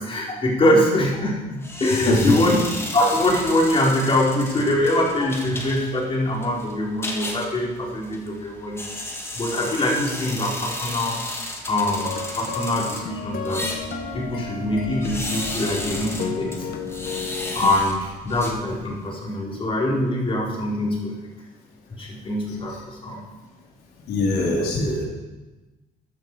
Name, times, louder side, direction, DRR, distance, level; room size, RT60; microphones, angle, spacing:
voice 1, 0.0-2.6 2.9-8.8 9.3-11.2 11.6-13.7 14.1-16.7 17.5-21.2 22.0-23.2, left 1 dB, 35° left, -3 dB, 4.6 m, -23 dB
sound 1, 1.6-19.1, left 1 dB, 15° left, 2.1 m, -34 dB
voice 2, 2.0-2.4 24.1-25.1, left 2 dB, 85° left, -2 dB, 3.7 m, -21 dB
sound 2, 11.9-17.7, left 5 dB, 70° left, 1.6 m, -32 dB
13.0 x 11.5 x 4.9 m, 1.2 s
cardioid pair, 100°, 16 cm